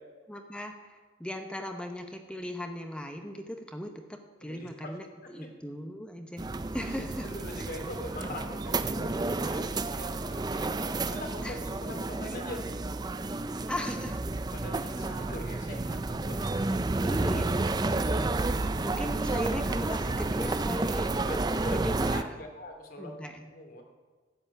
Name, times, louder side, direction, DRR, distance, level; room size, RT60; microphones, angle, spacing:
voice 1, 0.3-5.0 5.3-7.3 11.4-11.6 13.7-14.2 17.0-18.4 18.8-21.1 21.7-22.4 23.0-23.5, equal, 5° left, 5 dB, 0.9 m, -38 dB
voice 2, 4.4-4.9 5.2-5.5 7.2-12.6 14.5-16.6 21.2-23.1 23.5-23.8, left 1 dB, 50° left, 2 dB, 2.7 m, -43 dB
sound 1, 6.4-22.2, right 2 dB, 20° right, 0.4 m, -31 dB
13.0 x 8.1 x 9.1 m, 1.4 s
head